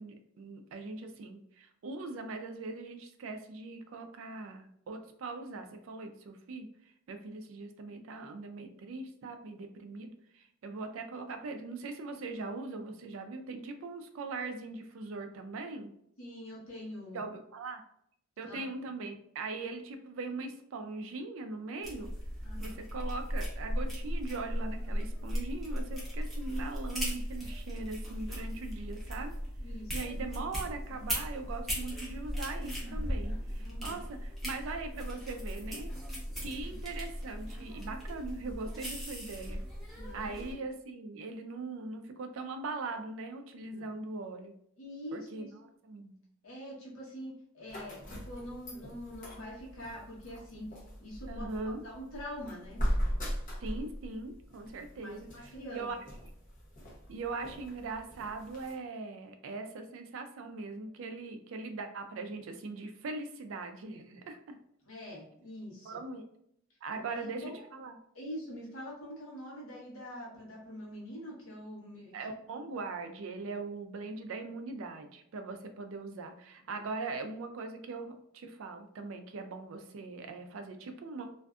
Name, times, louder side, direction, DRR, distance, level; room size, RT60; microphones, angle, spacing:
voice 1, 0.0-6.7 7.1-15.9 17.1-17.8 18.4-22.1 22.6-29.3 29.9-35.9 36.4-39.6 40.1-44.5 45.1-46.2 51.3-51.8 53.6-56.0 57.1-64.6 65.8-66.2 66.8-67.4 67.7-67.9 72.1-81.3, right 3 dB, 65° right, 6 dB, 0.3 m, -41 dB
voice 2, 16.2-17.2 18.4-18.9 22.4-22.8 28.2-28.6 29.6-30.2 33.6-34.0 39.9-40.5 43.6-43.9 44.8-45.5 46.4-50.6 51.0-52.8 54.9-55.9 64.8-66.0 66.9-67.6 68.1-72.1, equal, 70° left, -4 dB, 1.0 m, -45 dB
sound 1, 21.8-40.5, equal, ahead, 0.6 m, -37 dB
sound 2, 47.7-58.7, equal, 40° left, 0.7 m, -39 dB
2.5 x 2.3 x 2.3 m, 0.71 s
head